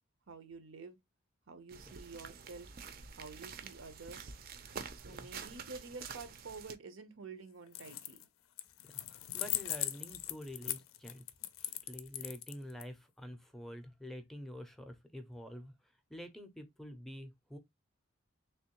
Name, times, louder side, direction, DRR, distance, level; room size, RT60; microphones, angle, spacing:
voice 1, 0.3-1.0 1.5-2.7 3.2-4.4 4.9-8.3, right 4 dB, 90° right, 0.7 m, -49 dB
sound 1, 1.7-6.8, right 6 dB, 50° right, 0.5 m, -48 dB
sound 2, 7.7-8.2 8.6-12.8, left 14 dB, 90° left, 0.4 m, -39 dB
voice 2, 8.8-11.2 11.6-17.6, left 1 dB, ahead, 0.5 m, -48 dB
3.4 x 3.1 x 2.9 m
head